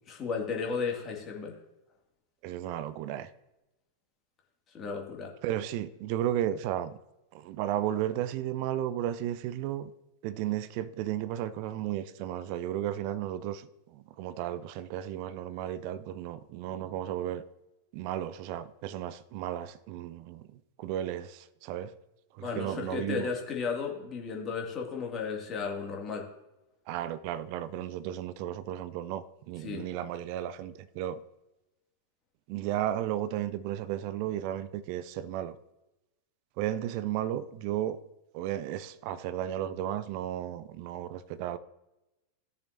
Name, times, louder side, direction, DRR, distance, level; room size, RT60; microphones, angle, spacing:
voice 1, 0.1-1.6 4.7-5.3 22.4-26.3 29.6-29.9, left 5 dB, 30° left, 2.2 m, -34 dB
voice 2, 2.4-3.3 5.4-7.0 7.3-9.9 10.2-17.4 17.9-20.5 20.8-21.9 22.3-23.3 26.9-31.2 32.5-35.6 36.6-38.0 38.3-41.6, right 12 dB, 45° right, 0.6 m, -34 dB
16.5 x 6.8 x 2.7 m
figure-of-eight pair, 90°, 0 cm